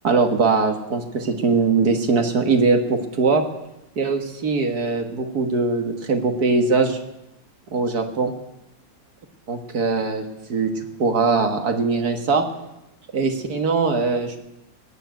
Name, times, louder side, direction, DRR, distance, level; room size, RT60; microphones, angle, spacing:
voice 1, 0.0-3.4 4.0-7.0 7.7-8.3 9.5-10.7 11.0-12.5 13.1-14.4, right 4 dB, 60° right, 5 dB, 1.8 m, -21 dB
20.0 x 7.2 x 9.2 m, 0.89 s
omnidirectional pair, 2.0 m